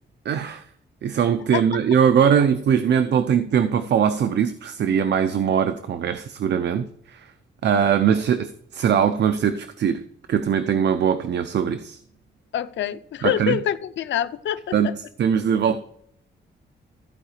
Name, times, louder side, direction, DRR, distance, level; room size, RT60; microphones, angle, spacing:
voice 1, 0.2-0.7 1.0-7.3 7.6-12.0 13.2-13.6 14.7-15.8, right 8 dB, 70° right, 0.7 m, -21 dB
voice 2, 12.5-14.7, left 10 dB, 85° left, 0.7 m, -25 dB
14.5 x 4.9 x 6.5 m
wide cardioid pair, 140°, 19 cm